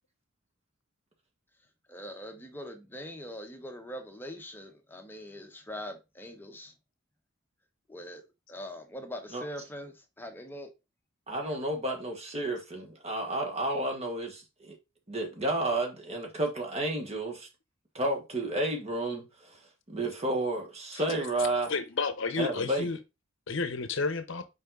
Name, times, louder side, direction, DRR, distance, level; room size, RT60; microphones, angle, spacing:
voice 1, 1.9-6.7 7.9-8.2 8.5-10.7, equal, 10° left, 1.0 m, -42 dB
voice 2, 11.3-14.8 15.1-17.5 17.9-19.6 19.9-21.7 22.4-22.9, right 1 dB, 30° right, 1.6 m, -31 dB
voice 3, 21.7-23.0 23.5-24.5, left 4 dB, 60° left, 0.7 m, -31 dB
5.5 x 4.8 x 3.8 m
head